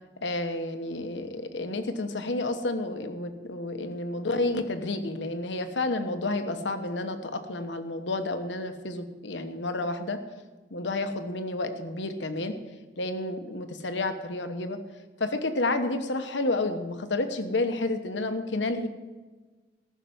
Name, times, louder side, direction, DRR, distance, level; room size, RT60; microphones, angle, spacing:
voice 1, 0.2-10.2 10.7-12.5 13.0-14.8 15.2-18.9, left 2 dB, 85° left, 8 dB, 1.1 m, -30 dB
14.0 x 6.8 x 7.8 m, 1.3 s
head